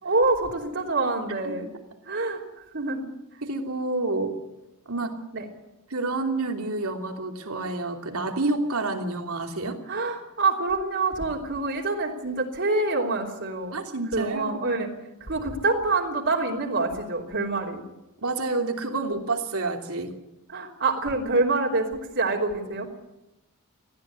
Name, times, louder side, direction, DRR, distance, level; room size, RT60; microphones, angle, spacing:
voice 1, 0.0-1.7 2.1-2.4 2.7-3.0 5.3-5.5 9.9-13.8 14.1-14.9 15.2-17.8 20.5-22.9, right 3 dB, 60° right, -2 dB, 3.3 m, -26 dB
voice 2, 3.4-4.4 4.9-5.2 5.9-9.8 13.7-14.6 18.2-20.1, right 2 dB, 80° right, 4 dB, 3.0 m, -28 dB
19.5 x 14.5 x 9.8 m, 0.96 s
head